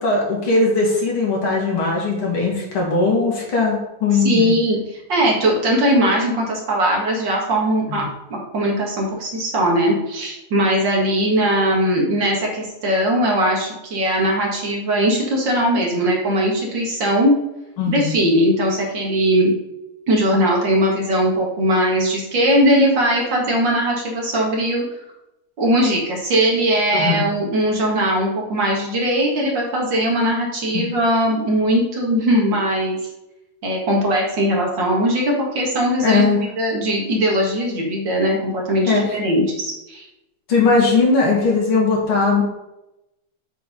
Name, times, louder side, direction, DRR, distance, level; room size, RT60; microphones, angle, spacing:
voice 1, 0.0-4.5 7.9-8.0 17.8-18.1 26.9-27.2 30.7-30.8 36.0-36.4 38.9-39.0 40.5-42.4, left 3 dB, 70° left, -2 dB, 2.8 m, -19 dB
voice 2, 4.2-17.3 17.9-19.5 20.1-24.8 25.6-33.0 33.6-40.0, equal, 55° right, -2 dB, 2.6 m, -19 dB
8.0 x 4.8 x 5.2 m, 0.92 s
omnidirectional pair, 2.4 m